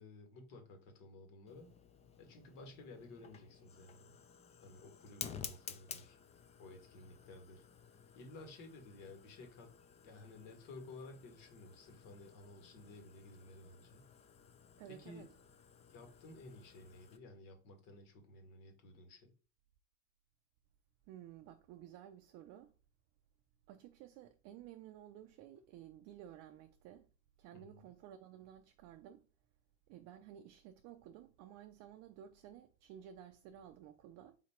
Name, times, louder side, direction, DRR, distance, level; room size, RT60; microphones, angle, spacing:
voice 1, 0.0-1.7 2.2-4.2 4.6-6.2 6.6-7.7 8.1-9.7 10.0-14.1 14.9-15.3 15.9-19.3 27.5-27.9, left 2 dB, 60° left, 1.8 m, -54 dB
Fire, 1.5-17.2, left 7 dB, 20° left, 0.4 m, -54 dB
voice 2, 14.8-15.3 21.1-22.7 23.7-27.1 27.4-29.3 29.9-34.4, right 10 dB, 45° right, 0.5 m, -54 dB
4.1 x 2.9 x 4.4 m
supercardioid pair, 120°, 37 cm